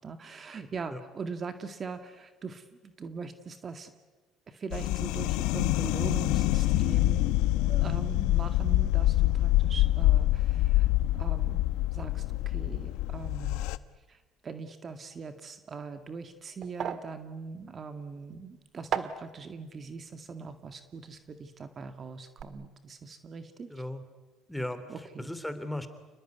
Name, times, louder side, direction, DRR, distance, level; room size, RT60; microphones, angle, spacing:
voice 1, 0.0-3.9 4.5-7.4 7.7-10.9 11.1-11.6 11.9-13.6 14.1-23.7 24.9-25.3, right 5 dB, 40° right, 8 dB, 2.0 m, -41 dB
sound 1, 4.7-13.8, left 16 dB, 85° left, 0.9 m, -26 dB
sound 2, 15.7-21.9 22.1-22.4, right 8 dB, 55° right, 1.7 m, -40 dB
voice 2, 23.7-24.0 24.5-25.9, left 1 dB, 5° left, 10 dB, 3.1 m, -36 dB
29.0 x 20.0 x 9.5 m, 1.2 s
supercardioid pair, 90°, 0 cm